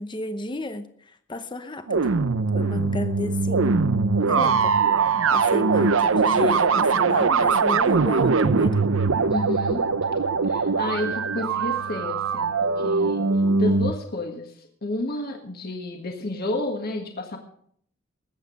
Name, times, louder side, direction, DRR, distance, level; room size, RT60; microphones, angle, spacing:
voice 1, 0.0-2.2 2.5-3.8 4.2-8.8, left 1 dB, 25° left, 9 dB, 0.8 m, -33 dB
sound 1, 1.9-13.9, right 4 dB, 80° right, 0.7 m, -21 dB
voice 2, 9.3-9.8 10.5-13.3 13.5-17.4, left 2 dB, 50° left, 3 dB, 1.6 m, -31 dB
20.0 x 8.3 x 5.3 m, 0.63 s
head